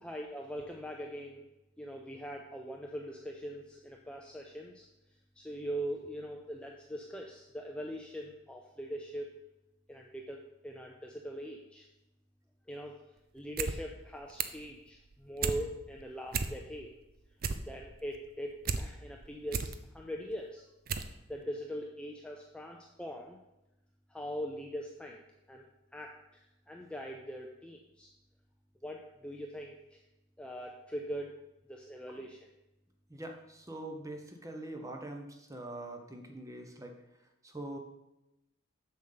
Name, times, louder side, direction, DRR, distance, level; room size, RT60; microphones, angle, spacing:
voice 1, 0.0-1.5 1.8-4.9 5.4-9.3 9.9-11.9 12.7-13.0 13.3-16.9 17.7-20.6 21.3-23.4 24.1-25.2 25.5-25.7 25.9-28.1 28.8-30.0 30.4-31.3 31.7-32.5, equal, 5° left, 0 dB, 0.5 m, -41 dB
sound 1, 13.4-13.8 14.0-14.7 15.0-15.6 16.0-16.1 16.3-16.9 17.2-18.8 19.2-19.8 20.3-20.4 20.9-21.1 21.4-21.5, right 5 dB, 45° right, 0.5 m, -34 dB
voice 2, 33.1-36.9 37.4-37.8, right 1 dB, 15° right, 3 dB, 0.9 m, -43 dB
7.2 x 6.5 x 5.7 m, 0.94 s
head